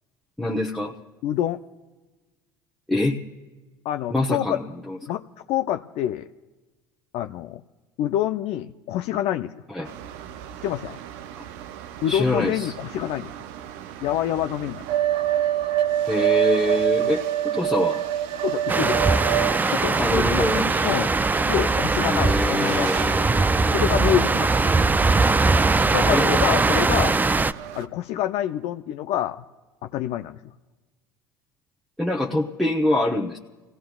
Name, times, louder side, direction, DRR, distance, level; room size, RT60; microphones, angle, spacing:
voice 1, 0.4-0.9 2.9-3.2 4.1-5.0 9.7-9.9 11.4-11.5 12.1-12.7 16.1-18.0 20.0-20.7 22.1-23.8 26.1-26.3 32.0-33.4, left 1 dB, ahead, -4 dB, 1.1 m, -25 dB
voice 2, 1.2-1.6 3.8-4.6 5.1-6.3 7.1-7.6 8.0-9.5 10.6-11.0 12.0-13.3 14.0-14.8 18.4-19.1 19.7-21.1 21.4-22.9 23.7-24.7 25.4-25.5 25.9-27.2 27.7-29.4 29.8-30.4, left 12 dB, 60° left, 7 dB, 0.6 m, -27 dB
sound 1, 9.8-27.8, right 11 dB, 70° right, 0.6 m, -29 dB
sound 2, 18.7-27.5, right 3 dB, 15° right, 0.4 m, -21 dB
30.0 x 17.5 x 2.4 m, 1.2 s
hypercardioid pair, 70°, 12 cm